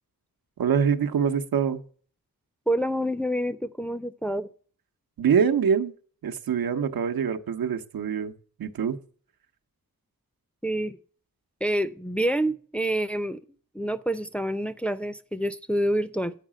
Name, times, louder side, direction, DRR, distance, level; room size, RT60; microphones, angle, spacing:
voice 1, 0.6-1.8 5.2-5.9 6.2-8.3 8.6-9.0, right 7 dB, 85° right, 0.9 m, -24 dB
voice 2, 2.7-4.5 10.6-11.0 11.6-13.4 13.7-16.3, right 1 dB, 5° left, 0.5 m, -27 dB
9.2 x 4.9 x 7.3 m
wide cardioid pair, 105°, 34 cm